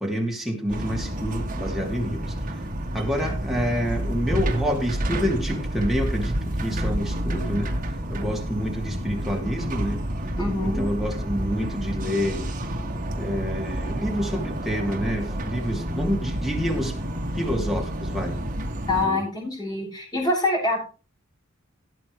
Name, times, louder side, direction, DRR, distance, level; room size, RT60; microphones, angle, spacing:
voice 1, 0.0-2.6 2.9-7.7 8.1-10.0 10.6-12.5 13.1-16.9 17.3-18.4 19.0-19.2, equal, ahead, -1 dB, 2.8 m, -28 dB
sound 1, 0.7-19.1, right 1 dB, 40° right, 2.2 m, -29 dB
voice 2, 10.4-10.8 18.9-20.8, left 2 dB, 20° left, -1 dB, 7.0 m, -25 dB
17.5 x 8.5 x 3.3 m, 0.33 s
head